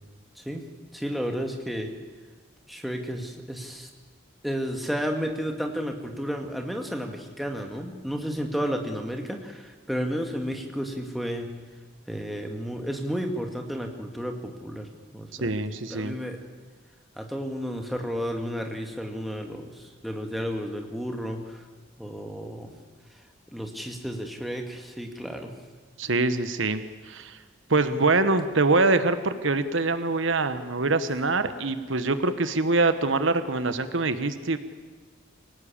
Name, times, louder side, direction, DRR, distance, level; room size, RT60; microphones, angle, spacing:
voice 1, 0.9-1.9 2.7-3.9 4.4-11.5 12.1-16.4 17.2-21.6 22.0-22.7 23.5-25.5, equal, ahead, 3 dB, 2.1 m, -32 dB
voice 2, 15.4-16.2 26.0-27.4 27.7-34.6, right 3 dB, 70° right, 11 dB, 1.2 m, -24 dB
25.0 x 18.0 x 8.7 m, 1.5 s
head